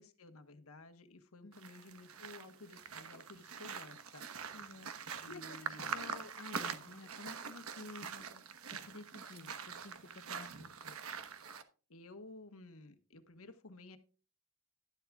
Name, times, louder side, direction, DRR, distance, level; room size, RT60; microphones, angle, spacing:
voice 1, 0.0-4.2 5.2-6.2 11.9-14.0, left 2 dB, 85° left, 9 dB, 1.4 m, -54 dB
sound 1, 1.5-11.6, right 6 dB, 90° right, 1.2 m, -44 dB
voice 2, 4.5-8.4 8.7-11.0, left 2 dB, 65° left, 4 dB, 1.0 m, -52 dB
12.5 x 11.5 x 2.4 m, 0.37 s
head